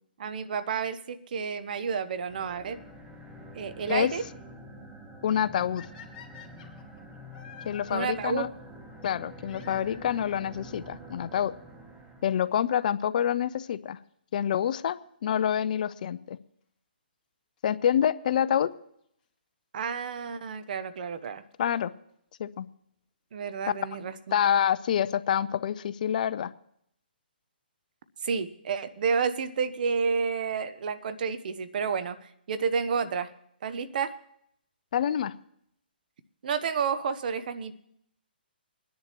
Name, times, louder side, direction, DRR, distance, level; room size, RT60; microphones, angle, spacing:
voice 1, 0.2-2.8 3.5-4.2 7.9-8.5 19.7-21.4 23.3-24.1 28.2-33.3 33.6-34.1 36.4-37.8, right 6 dB, 55° right, 12 dB, 0.9 m, -30 dB
sound 1, 2.2-12.7, right 1 dB, 10° right, 0.9 m, -47 dB
voice 2, 5.2-5.8 7.7-8.5 9.0-11.5 12.2-14.0 14.3-16.4 17.6-18.7 21.6-21.9 22.4-22.7 24.3-26.5 34.9-35.3, left 9 dB, 50° left, 14 dB, 0.5 m, -27 dB
sound 2, 5.7-8.0 9.4-10.5 11.4-11.5 12.2-12.3 12.5-12.6 14.5-14.7 17.6-17.7 18.7-18.8 20.2-20.3 20.6-20.7 21.0-21.1 21.2-21.3 21.5-21.6 21.8-21.9 22.1-22.2, left 7 dB, 30° left, 2.6 m, -49 dB
24.5 x 10.5 x 3.0 m, 0.72 s
hypercardioid pair, 150°, 6 cm